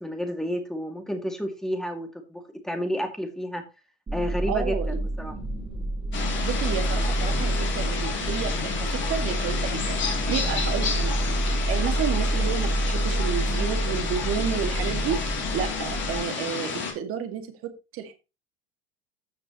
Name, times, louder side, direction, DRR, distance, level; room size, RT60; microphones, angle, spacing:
voice 1, 0.0-3.6 4.1-5.3, equal, ahead, 5 dB, 2.2 m, -31 dB
sound 1, 4.1-16.2, right 1 dB, 20° right, 2.9 m, -28 dB
voice 2, 4.5-5.0 6.4-11.1 11.7-18.1, right 8 dB, 45° right, 7 dB, 2.1 m, -31 dB
sound 2, 6.1-16.9, left 6 dB, 40° left, 2.9 m, -31 dB
14.0 x 6.0 x 3.0 m, 0.29 s
hypercardioid pair, 80°, 31 cm